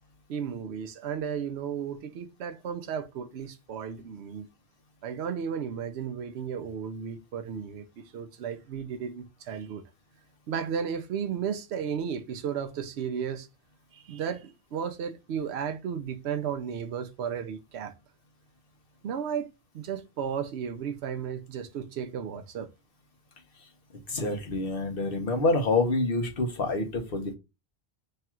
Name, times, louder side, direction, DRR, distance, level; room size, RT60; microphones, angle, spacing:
voice 1, 0.3-4.5 5.0-7.9 8.1-9.8 10.5-13.5 13.9-17.9 19.0-19.5 19.7-22.7, right 7 dB, 85° right, 0.9 m, -34 dB
voice 2, 24.1-27.3, left 2 dB, 60° left, 1.1 m, -27 dB
3.3 x 2.4 x 4.3 m
omnidirectional pair, 1.1 m